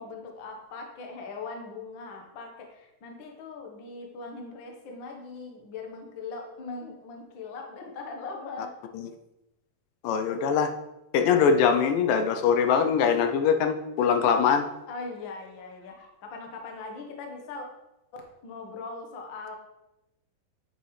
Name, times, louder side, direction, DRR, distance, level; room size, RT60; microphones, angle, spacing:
voice 1, 0.0-8.7 14.0-14.5 14.9-17.6 18.4-19.6, left 4 dB, 60° left, 1 dB, 1.3 m, -40 dB
voice 2, 10.0-10.7 11.1-14.7, left 6 dB, 85° left, 6 dB, 2.2 m, -22 dB
8.6 x 6.9 x 3.2 m, 0.92 s
omnidirectional pair, 3.8 m